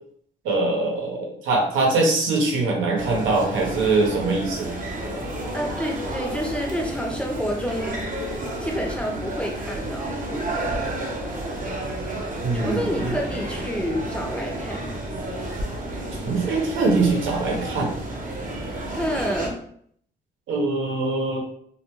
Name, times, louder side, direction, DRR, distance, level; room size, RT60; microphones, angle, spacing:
voice 1, 0.4-4.7 12.4-13.2 16.2-17.9 20.5-21.4, right 3 dB, 80° right, -1 dB, 0.8 m, -23 dB
sound 1, 3.0-19.5, right 1 dB, 40° right, 0.7 m, -31 dB
voice 2, 5.5-8.1 8.6-10.1 12.5-14.8 19.0-19.5, equal, 5° left, 0 dB, 0.6 m, -28 dB
2.4 x 2.2 x 2.9 m, 0.65 s
cardioid pair, 90°, 20 cm